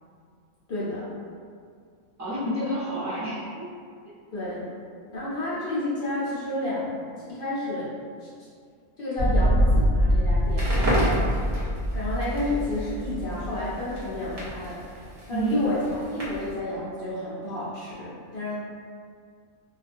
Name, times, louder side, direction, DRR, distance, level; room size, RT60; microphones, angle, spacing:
voice 1, 0.7-1.1 4.3-4.7 5.1-6.9 7.2-7.9 8.2-8.3 9.0-10.7 11.9-14.8 15.3-18.5, left 1 dB, 60° left, -9 dB, 0.6 m, -30 dB
voice 2, 2.2-3.7 10.8-11.2 15.3-15.6, right 1 dB, 20° right, -12 dB, 0.6 m, -30 dB
sound 1, 9.2-14.4, equal, 85° right, 0.3 m, -24 dB
Crackle, 10.4-16.6, equal, 55° right, 0.9 m, -33 dB
2.3 x 2.2 x 2.5 m, 2.2 s
omnidirectional pair, 1.4 m